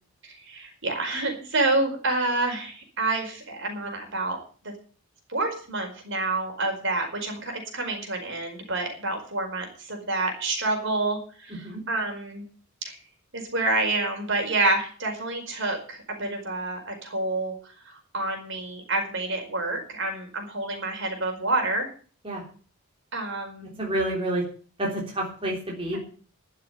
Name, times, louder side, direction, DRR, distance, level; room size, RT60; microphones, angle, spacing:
voice 1, 0.2-4.4 4.6-4.7 5.3-12.4 12.8-13.0 13.3-21.9 23.1-23.7, right 2 dB, 55° right, 3 dB, 4.9 m, -28 dB
voice 2, 23.8-24.4 24.8-26.0, right 1 dB, 25° right, -2 dB, 3.5 m, -28 dB
13.0 x 7.4 x 9.1 m, 0.40 s
head